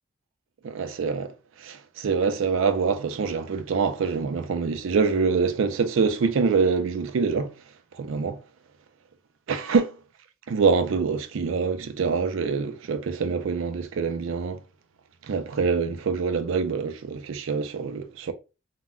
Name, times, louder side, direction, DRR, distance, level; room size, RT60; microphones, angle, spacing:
voice 1, 0.6-1.3 1.6-7.5 7.9-8.4 9.5-9.9 10.5-14.6 15.3-18.3, right 5 dB, 65° right, 0.4 m, -25 dB
2.1 x 2.1 x 3.6 m
head